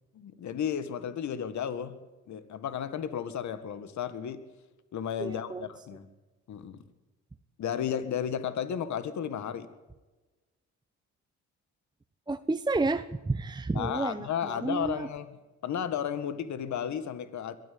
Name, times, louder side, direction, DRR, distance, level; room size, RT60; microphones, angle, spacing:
voice 1, 0.1-2.0 2.3-4.4 4.9-6.1 6.5-6.8 7.6-9.7 13.7-15.3 15.6-17.6, left 8 dB, 70° left, 12 dB, 1.9 m, -33 dB
voice 2, 5.2-5.7 12.3-15.1, right 3 dB, 15° right, 9 dB, 0.9 m, -31 dB
22.0 x 14.0 x 8.7 m, 1.2 s
cardioid pair, 90°, 30 cm